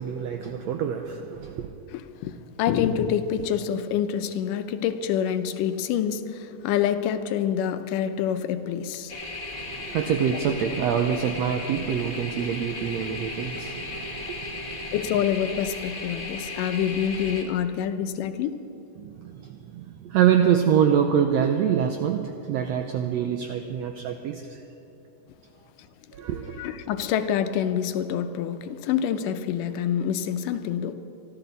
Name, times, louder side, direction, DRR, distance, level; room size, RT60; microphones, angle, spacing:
voice 1, 0.0-1.7 9.5-14.9 19.0-24.6 26.1-26.6, right 8 dB, 80° right, 5 dB, 1.5 m, -25 dB
voice 2, 1.9-2.3 2.6-9.1 9.9-10.0 14.9-18.5 26.5-30.9, left 9 dB, 85° left, 9 dB, 2.3 m, -26 dB
sound 1, 9.1-17.4, left 2 dB, 45° left, 0.8 m, -36 dB
25.0 x 13.0 x 4.0 m, 2.7 s
omnidirectional pair, 3.7 m